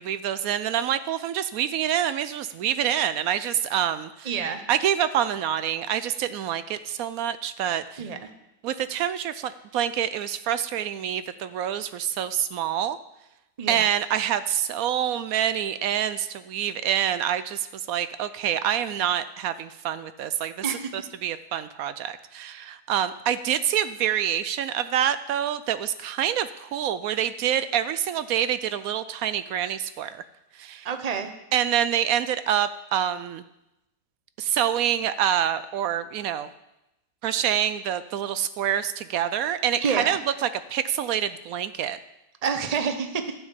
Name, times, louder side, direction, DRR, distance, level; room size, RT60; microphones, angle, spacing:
voice 1, 0.0-4.3 4.7-8.0 8.6-13.0 13.7-20.5 20.9-30.2 30.6-30.9 31.5-33.4 34.4-36.5 37.2-42.0, right 10 dB, 70° right, 13 dB, 0.8 m, -26 dB
voice 2, 4.2-4.6 8.0-8.3 13.6-13.9 20.6-20.9 30.8-31.3 39.8-40.2 42.4-43.3, right 6 dB, 35° right, 7 dB, 0.6 m, -28 dB
11.5 x 6.3 x 8.1 m, 0.91 s
omnidirectional pair, 1.9 m